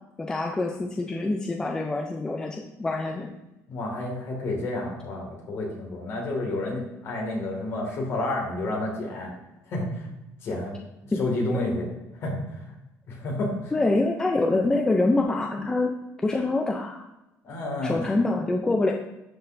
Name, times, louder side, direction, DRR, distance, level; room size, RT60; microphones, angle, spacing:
voice 1, 0.2-3.3 11.1-11.2 11.5-11.6 13.7-15.9 16.2-17.1 17.8-18.9, left 2 dB, 10° left, 1 dB, 0.5 m, -25 dB
voice 2, 3.7-9.3 9.7-10.1 10.4-10.7 11.0-11.9 12.2-12.6 13.1-13.7 17.4-18.0, left 2 dB, 50° left, 0 dB, 2.1 m, -30 dB
12.0 x 4.2 x 2.6 m, 0.95 s
cardioid pair, 150°, 6 cm